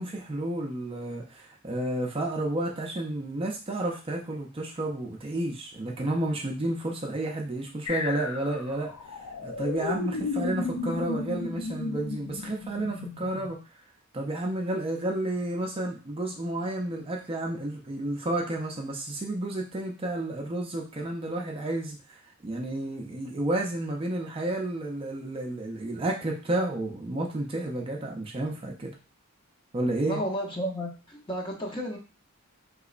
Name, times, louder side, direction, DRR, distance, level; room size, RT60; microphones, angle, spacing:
voice 1, 0.0-13.6 14.1-28.9 29.7-30.2, right 1 dB, 25° right, 0 dB, 0.4 m, -31 dB
sound 1, 7.8-13.5, left 3 dB, 90° left, 0.5 m, -34 dB
voice 2, 30.0-32.0, equal, 20° left, 0 dB, 0.7 m, -32 dB
3.9 x 3.0 x 2.4 m, 0.34 s
head